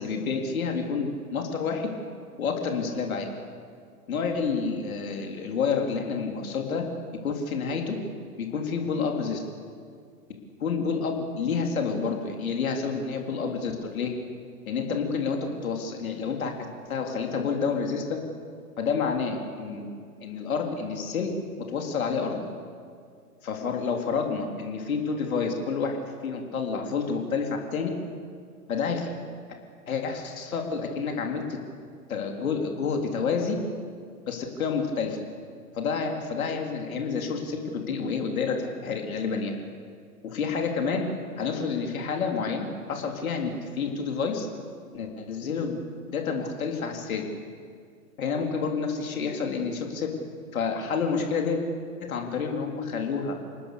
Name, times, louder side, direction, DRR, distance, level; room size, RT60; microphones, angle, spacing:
voice 1, 0.0-1.9 2.4-3.3 4.1-6.8 7.2-8.0 8.4-9.4 10.6-14.1 14.7-16.5 16.9-18.2 18.8-19.9 20.2-21.3 21.7-22.4 23.4-25.9 26.2-27.9 28.7-29.1 29.9-31.4 32.1-33.6 34.3-35.2 35.7-39.5 40.2-41.1 41.4-44.5 44.9-47.2 48.2-50.1 50.5-51.6 52.0-53.3, left 5 dB, 65° left, 2 dB, 3.7 m, -29 dB
27.5 x 19.0 x 7.0 m, 2.1 s
figure-of-eight pair, 120°, 46 cm